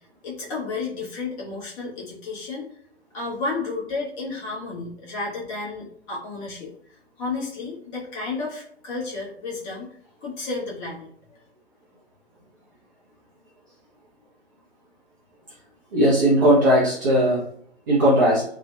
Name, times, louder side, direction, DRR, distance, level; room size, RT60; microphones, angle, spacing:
voice 1, 0.2-2.7 3.1-6.7 7.2-9.9 10.2-11.1, left 3 dB, 30° left, -4 dB, 0.9 m, -32 dB
voice 2, 15.9-17.4 17.9-18.4, right 1 dB, 20° right, -8 dB, 0.4 m, -18 dB
2.6 x 2.1 x 2.3 m, 0.65 s
figure-of-eight pair, 115°, 34 cm